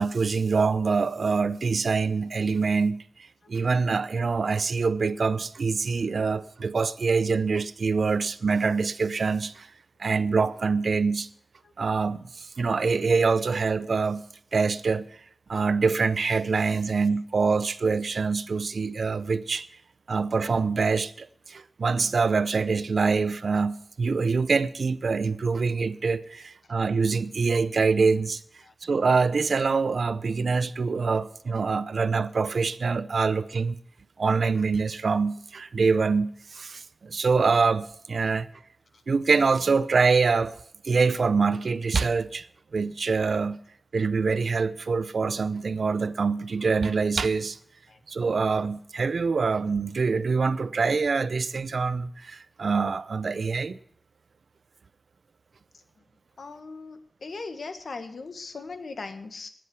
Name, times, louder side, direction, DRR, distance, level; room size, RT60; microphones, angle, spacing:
voice 1, 0.0-3.0 3.5-9.7 10.0-11.3 11.8-14.3 14.5-15.2 15.5-19.7 20.1-28.4 28.8-33.8 34.2-38.5 39.1-40.5 40.8-42.5 42.7-43.6 43.9-47.6 48.1-53.8, right 4 dB, 85° right, 0.6 m, -25 dB
voice 2, 56.4-59.5, left 4 dB, 85° left, 1.4 m, -38 dB
20.0 x 7.7 x 6.1 m
wide cardioid pair, 70°, 0 cm